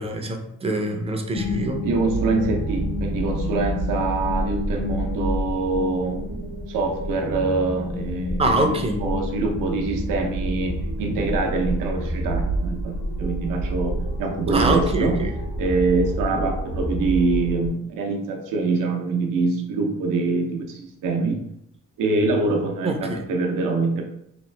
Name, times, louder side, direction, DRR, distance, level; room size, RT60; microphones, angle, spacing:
voice 1, 0.0-1.8 8.4-9.0 14.5-15.3 22.8-23.2, right 2 dB, 20° right, 4 dB, 0.4 m, -24 dB
sound 1, 1.3-17.7, equal, 70° left, 0.9 m, -28 dB
voice 2, 1.8-8.4 8.7-15.2 15.6-21.4 22.0-24.0, right 3 dB, 85° right, 2 dB, 0.6 m, -25 dB
2.9 x 2.4 x 3.2 m, 0.79 s
cardioid pair, 140°, 32 cm